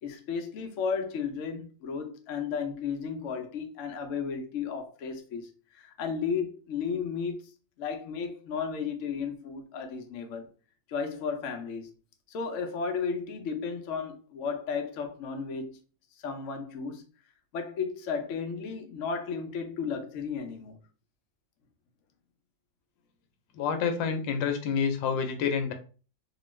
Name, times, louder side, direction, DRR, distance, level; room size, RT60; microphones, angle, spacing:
voice 1, 0.0-7.5 7.8-10.5 10.9-11.9 12.3-15.8 16.2-17.0 17.5-20.8, left 6 dB, 70° left, 0.7 m, -34 dB
voice 2, 23.5-25.7, left 6 dB, 85° left, 1.3 m, -28 dB
2.9 x 2.3 x 3.0 m
omnidirectional pair, 2.0 m